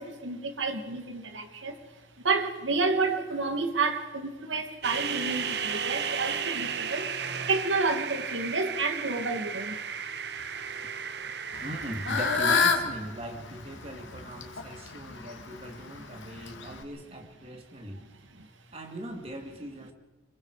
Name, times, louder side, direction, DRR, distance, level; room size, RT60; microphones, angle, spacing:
voice 1, 0.0-1.7 2.2-7.1 7.5-9.7, right 3 dB, 85° right, 6 dB, 2.1 m, -30 dB
sound 1, 4.8-12.4, right 6 dB, 60° right, 1.1 m, -34 dB
Fowl / Bird, 11.5-16.8, left 5 dB, 80° left, 2.2 m, -30 dB
voice 2, 11.6-18.0 18.7-19.9, right 1 dB, 30° right, 3 dB, 2.6 m, -39 dB
26.0 x 22.0 x 4.9 m, 1.2 s
head